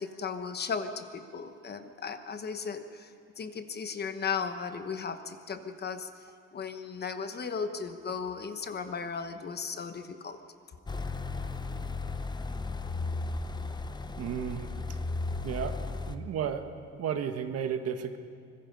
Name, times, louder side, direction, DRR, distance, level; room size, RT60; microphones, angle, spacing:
voice 1, 0.0-3.1 3.4-6.1 6.5-10.4, left 5 dB, 35° left, 8 dB, 1.1 m, -36 dB
sound 1, 10.9-16.2, left 3 dB, 15° left, 0.7 m, -35 dB
voice 2, 14.2-14.7 15.4-15.7 16.1-16.6 17.0-18.2, right 8 dB, 55° right, 8 dB, 1.4 m, -33 dB
25.0 x 21.0 x 5.4 m, 2.2 s
cardioid pair, 145°, 30 cm